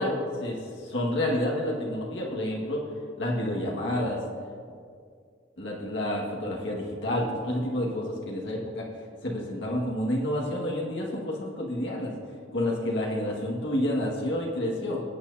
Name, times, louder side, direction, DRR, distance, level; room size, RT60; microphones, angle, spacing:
voice 1, 0.0-2.8 3.2-4.2 5.6-8.8 9.2-12.1 12.5-15.0, left 1 dB, 75° left, -3 dB, 1.9 m, -29 dB
19.0 x 9.3 x 2.8 m, 2.2 s
head